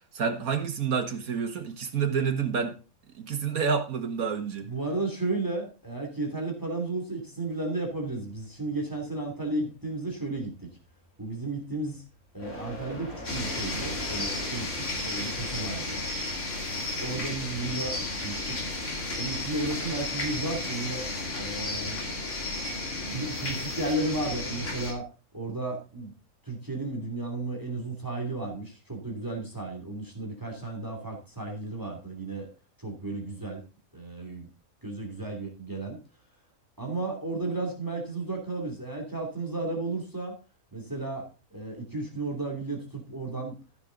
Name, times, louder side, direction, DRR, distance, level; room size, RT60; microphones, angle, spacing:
voice 1, 0.1-2.8 3.1-4.7, right 6 dB, 85° right, 2.0 m, -28 dB
voice 2, 4.7-10.7 11.2-12.0 12.3-16.0 17.0-18.6 19.1-21.1 21.4-22.0 23.1-25.1 25.3-26.1 26.4-32.5 32.8-33.6 33.9-34.5 34.8-36.0 36.8-40.4 40.7-43.6, right 2 dB, 15° right, 2.7 m, -33 dB
sound 1, 7.9-14.8, equal, 85° left, 4.0 m, -44 dB
sound 2, 13.2-24.9, left 2 dB, 60° left, 3.0 m, -33 dB
14.0 x 6.8 x 3.9 m
omnidirectional pair, 1.5 m